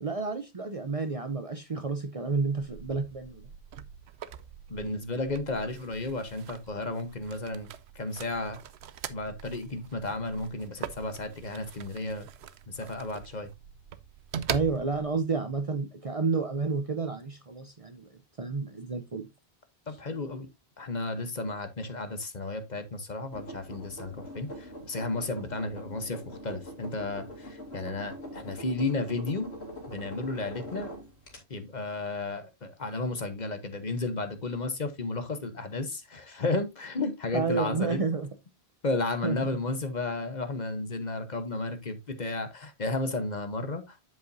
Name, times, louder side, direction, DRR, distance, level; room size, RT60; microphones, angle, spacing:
voice 1, 0.0-3.5 14.5-18.1 18.4-19.3 37.3-38.3 39.2-39.5, right 4 dB, 40° right, 0.7 m, -30 dB
sound 1, 2.6-15.2, right 9 dB, 80° right, 0.9 m, -42 dB
voice 2, 4.7-7.7 7.9-8.6 9.1-12.3 12.7-13.5 19.9-20.5 20.8-29.5 29.9-30.9 31.5-38.0 38.8-44.0, left 2 dB, 45° left, 1.1 m, -33 dB
sound 2, 23.3-31.4, equal, 75° left, 3.1 m, -43 dB
8.2 x 7.5 x 2.6 m
omnidirectional pair, 1.1 m